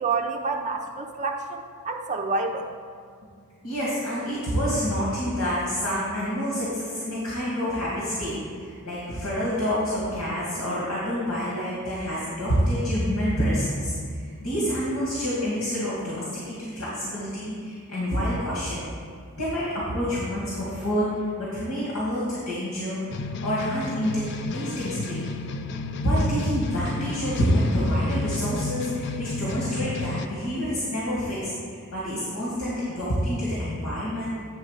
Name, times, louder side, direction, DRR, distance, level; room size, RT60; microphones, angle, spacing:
voice 1, 0.0-2.7, right 4 dB, 35° right, 3 dB, 0.7 m, -28 dB
voice 2, 3.6-18.9 19.4-23.0 23.4-25.3 26.0-34.3, equal, 85° left, -7 dB, 2.2 m, -27 dB
sound 1, 23.1-30.3, left 3 dB, 55° left, 0.4 m, -33 dB
9.4 x 3.7 x 6.5 m, 2.2 s
head